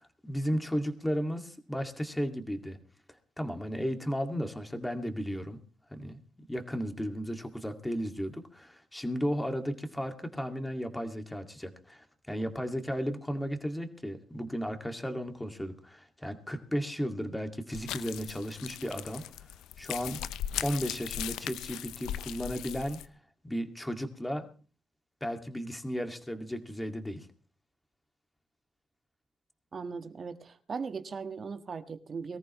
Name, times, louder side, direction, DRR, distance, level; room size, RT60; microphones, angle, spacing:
voice 1, 0.0-2.8 3.4-5.6 5.9-6.2 6.5-19.2 19.8-20.2 20.6-23.0 23.4-24.5 25.2-27.3, equal, 10° left, 6 dB, 2.1 m, -34 dB
sound 1, 17.7-23.1, left 11 dB, 90° left, 0.6 m, -38 dB
voice 2, 29.7-32.4, right 5 dB, 45° right, 9 dB, 1.5 m, -38 dB
23.0 x 14.0 x 3.1 m, 0.38 s
cardioid pair, 90°, 0 cm